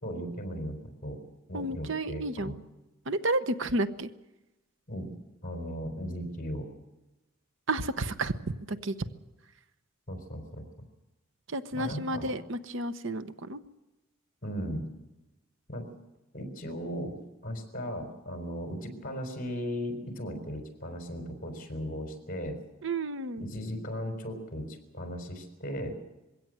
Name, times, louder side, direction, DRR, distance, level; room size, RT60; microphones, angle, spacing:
voice 1, 0.0-1.2 1.5-2.6 4.9-5.1 5.4-6.7 10.1-10.6 11.7-12.3 14.4-14.8 15.7-15.8 16.3-22.6 23.4-26.0, equal, 40° left, 6 dB, 4.4 m, -37 dB
voice 2, 1.5-2.5 3.1-4.1 7.7-8.3 8.7-8.9 11.5-13.6 22.8-23.5, right 2 dB, 60° right, 12 dB, 1.0 m, -31 dB
22.0 x 16.5 x 7.7 m, 1.0 s
head